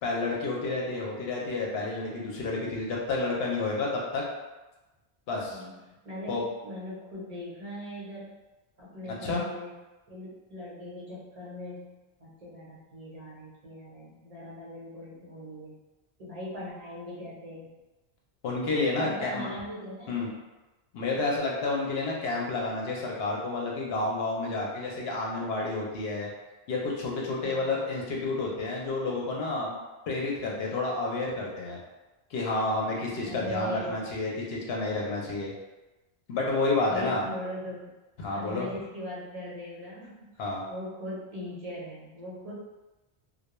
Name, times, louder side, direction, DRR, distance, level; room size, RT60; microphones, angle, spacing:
voice 1, 0.0-4.2 5.3-5.6 6.3-6.4 9.0-9.4 18.4-19.5 20.1-20.3 20.9-26.3 26.7-29.8 30.1-31.8 32.3-35.5 36.3-37.3 38.2-38.7 40.4-40.6, left 3 dB, 75° left, -2 dB, 0.8 m, -30 dB
voice 2, 5.5-8.4 8.8-9.7 10.1-15.7 16.2-17.7 19.0-20.2 27.4-27.8 33.2-33.9 36.8-37.9 38.3-40.3 40.7-42.5, left 1 dB, 40° right, -7 dB, 0.8 m, -40 dB
2.2 x 2.1 x 2.9 m, 1.1 s
omnidirectional pair, 1.1 m